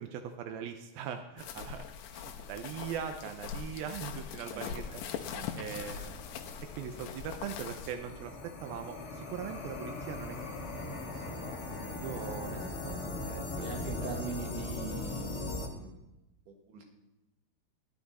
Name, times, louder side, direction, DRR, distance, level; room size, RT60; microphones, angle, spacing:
voice 1, 0.0-6.3 6.8-11.5 12.0-13.7, right 8 dB, 80° right, 6 dB, 2.1 m, -41 dB
sound 1, 1.4-8.0, left 8 dB, 80° left, 3.1 m, -42 dB
sound 2, 4.7-15.7, left 2 dB, 50° left, 1.7 m, -40 dB
voice 2, 5.1-5.6 11.8-12.0 13.6-16.0 16.5-16.8, right 4 dB, 55° right, 2 dB, 2.7 m, -42 dB
17.5 x 11.0 x 4.1 m, 0.97 s
omnidirectional pair, 5.1 m